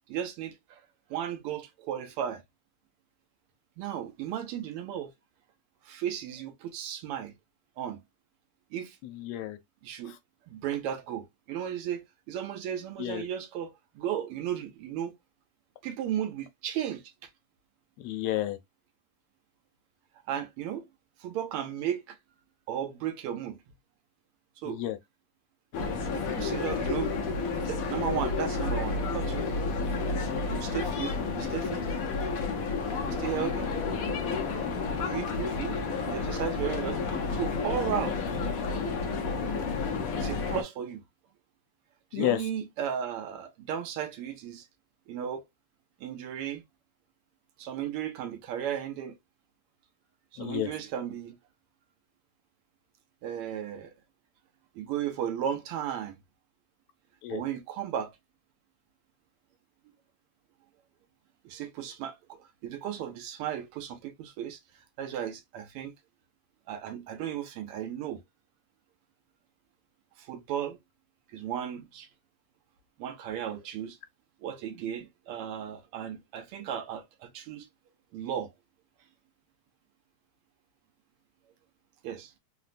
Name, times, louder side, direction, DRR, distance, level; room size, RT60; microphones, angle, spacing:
voice 1, 0.1-0.8 1.1-2.4 3.8-5.1 5.8-7.4 7.8-8.0 8.7-9.0 9.8-10.2 10.5-15.1 15.8-17.0 20.3-20.8 21.2-22.2 22.7-23.6 24.6-24.8 26.1-27.1 27.6-29.5 30.5-31.8 33.1-33.7 34.3-34.4 35.0-37.0 37.3-38.2 40.2-41.0 42.1-44.7 45.1-45.4 46.0-46.6 47.6-49.2 50.3-51.4 53.2-53.9 54.7-56.2 57.3-58.1 61.4-64.6 65.0-65.9 66.7-68.2 70.2-70.8 71.3-72.1 73.0-74.0 74.4-77.7 78.1-78.5 82.0-82.3, right 9 dB, 85° right, 1.6 m, -35 dB
voice 2, 9.0-9.6 10.1-10.2 13.0-13.2 18.0-18.6 24.6-25.0 42.1-42.5 50.4-50.7 57.2-57.4, left 13 dB, 90° left, 1.6 m, -31 dB
sound 1, 25.7-40.6, left 4 dB, 70° left, 0.8 m, -31 dB
sound 2, 32.2-37.2, left 5 dB, 50° left, 1.6 m, -46 dB
3.8 x 2.2 x 2.4 m
omnidirectional pair, 2.4 m